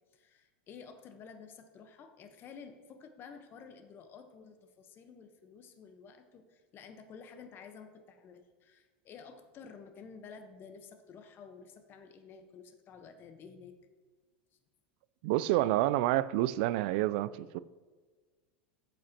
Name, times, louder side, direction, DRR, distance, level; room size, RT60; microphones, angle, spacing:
voice 1, 0.1-13.8, left 6 dB, 40° left, 1.0 m, -52 dB
voice 2, 15.2-17.6, right 15 dB, 60° right, 0.4 m, -28 dB
13.0 x 7.6 x 2.9 m
hypercardioid pair, 100°, 6 cm